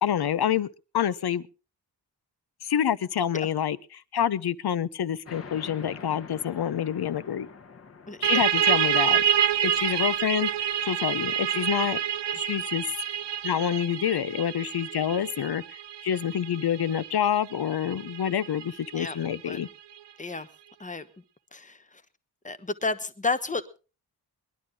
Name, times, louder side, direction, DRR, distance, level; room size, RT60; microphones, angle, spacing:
voice 1, 0.0-0.7 0.9-1.4 2.6-3.8 4.1-7.5 8.2-9.2 9.6-10.5 10.8-12.0 12.3-12.8 13.4-15.6 16.0-19.7, left 9 dB, 65° left, 0.8 m, -27 dB
sound 1, 5.3-12.4, left 5 dB, 35° left, 1.2 m, -48 dB
voice 2, 8.1-8.4 9.7-9.8 12.3-12.4 19.0-19.2 19.5-19.6 20.2-20.5 20.8-21.1 21.5-21.8 22.4-23.8, left 3 dB, 20° left, 1.0 m, -31 dB
sound 2, 8.2-19.6, right 9 dB, 80° right, 0.7 m, -27 dB
22.0 x 11.5 x 3.7 m
wide cardioid pair, 150°, 41 cm